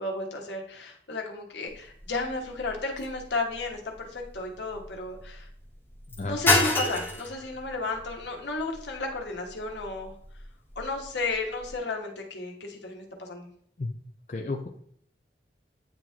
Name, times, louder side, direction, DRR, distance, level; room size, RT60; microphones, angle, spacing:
voice 1, 0.0-5.5 6.2-10.1 10.8-13.5, left 3 dB, 80° left, 1 dB, 1.3 m, -33 dB
sound 1, 1.7-11.8, left 2 dB, 10° left, 1.0 m, -32 dB
voice 2, 14.3-14.7, left 3 dB, 40° left, 3 dB, 0.4 m, -32 dB
8.9 x 3.0 x 3.5 m, 0.65 s
head